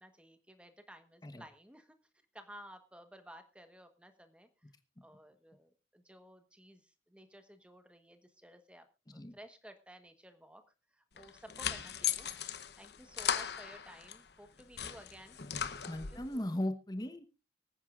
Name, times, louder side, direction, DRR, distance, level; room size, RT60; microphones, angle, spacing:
voice 1, 0.0-2.0 2.3-4.5 5.0-8.8 9.1-10.6 10.9-12.3 12.8-15.4 16.1-16.4, equal, 5° right, 8 dB, 1.2 m, -55 dB
sound 1, 11.2-14.2 14.6-16.3, left 8 dB, 60° left, 0.8 m, -37 dB
voice 2, 15.9-17.2, left 1 dB, 20° left, 9 dB, 1.0 m, -37 dB
24.5 x 9.1 x 2.5 m, 0.30 s
head